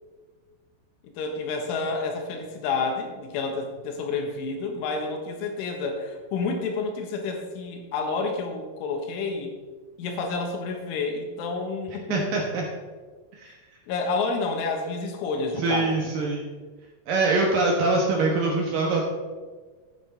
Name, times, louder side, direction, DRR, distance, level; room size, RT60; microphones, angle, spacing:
voice 1, 1.0-9.6 10.0-12.4 13.5-13.6 13.9-15.9, left 4 dB, 90° left, 3 dB, 3.9 m, -29 dB
voice 2, 12.1-12.6 13.3-13.5 15.6-16.5 17.1-19.0, right 3 dB, 70° right, -1 dB, 2.1 m, -24 dB
12.5 x 9.3 x 4.1 m, 1.5 s
omnidirectional pair, 5.5 m